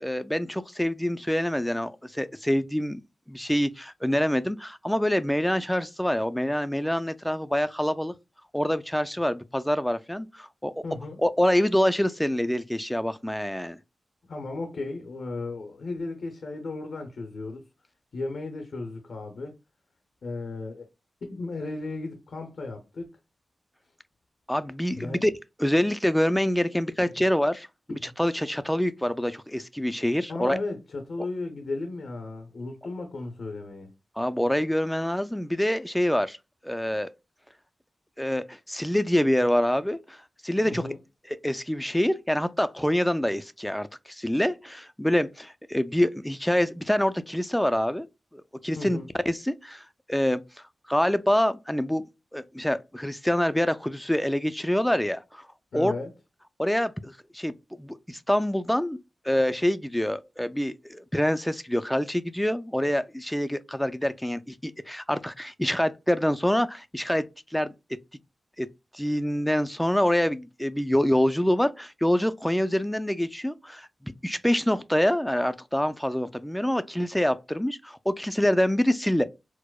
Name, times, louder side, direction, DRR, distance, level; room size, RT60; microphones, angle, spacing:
voice 1, 0.0-3.0 3.3-8.1 8.5-10.7 11.2-13.8 24.5-25.3 25.6-30.6 34.2-36.4 36.6-37.1 38.2-40.2 40.4-40.8 41.3-48.1 48.3-49.0 49.3-50.4 50.9-52.0 52.3-55.5 55.7-55.9 56.6-57.5 57.8-59.0 59.2-67.2 67.5-67.7 68.6-68.7 68.9-79.2, equal, 5° left, 0.3 m, -26 dB
voice 2, 10.8-11.2 14.3-17.6 18.1-19.6 20.2-20.9 21.2-23.1 24.9-25.2 28.0-28.1 30.3-33.9 40.6-41.0 48.8-49.1 55.7-56.1, left 3 dB, 80° left, 0.6 m, -35 dB
4.6 x 2.0 x 2.2 m
cardioid pair, 65°, 0 cm